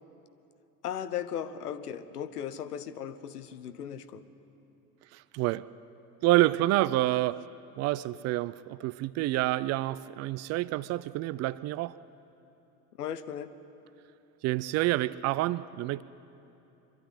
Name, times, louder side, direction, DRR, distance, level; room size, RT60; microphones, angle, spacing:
voice 1, 0.8-4.2 13.0-13.5, left 9 dB, 75° left, 11 dB, 1.0 m, -37 dB
voice 2, 5.1-5.7 6.2-7.4 7.8-12.0 14.4-16.0, right 16 dB, 35° right, 19 dB, 0.4 m, -28 dB
24.5 x 12.0 x 9.9 m, 3.0 s
figure-of-eight pair, 65°, 46 cm